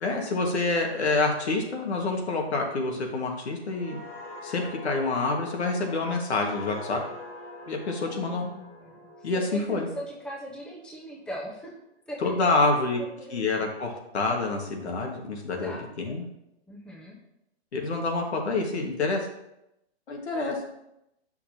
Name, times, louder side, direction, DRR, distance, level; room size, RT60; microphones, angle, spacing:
voice 1, 0.0-4.0 4.4-7.0 7.7-8.5 9.2-9.9 12.2-13.0 13.3-16.3 17.7-19.3 20.1-20.6, left 3 dB, 80° left, 1 dB, 1.7 m, -27 dB
sound 1, 3.7-11.1 11.5-11.8, left 3 dB, 30° left, 1.4 m, -44 dB
voice 2, 8.0-11.7 12.1-12.5 13.0-13.7 15.6-15.8 16.7-17.2, equal, 5° left, -4 dB, 0.9 m, -40 dB
8.4 x 5.8 x 2.8 m, 0.83 s
hypercardioid pair, 150°, 33 cm